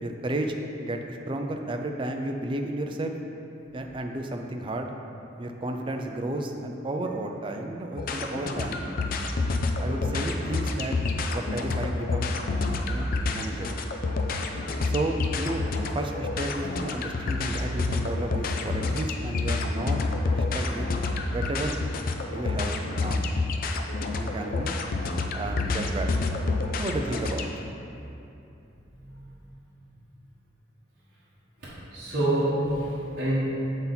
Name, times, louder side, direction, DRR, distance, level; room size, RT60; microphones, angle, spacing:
voice 1, 0.0-3.1 3.7-4.9 5.4-8.9 9.8-11.0 11.3-12.3 12.9-13.8 14.8-15.7 15.9-20.0 20.3-20.9 21.3-21.8 22.3-23.2 24.2-24.8 25.3-26.2 26.8-27.5, right 1 dB, 25° right, 4 dB, 0.4 m, -32 dB
sound 1, 8.0-27.6, left 3 dB, 50° left, 0.4 m, -28 dB
voice 2, 28.9-29.7 31.6-33.4, right 1 dB, 50° right, -12 dB, 1.2 m, -29 dB
7.3 x 4.1 x 4.0 m, 2.8 s
head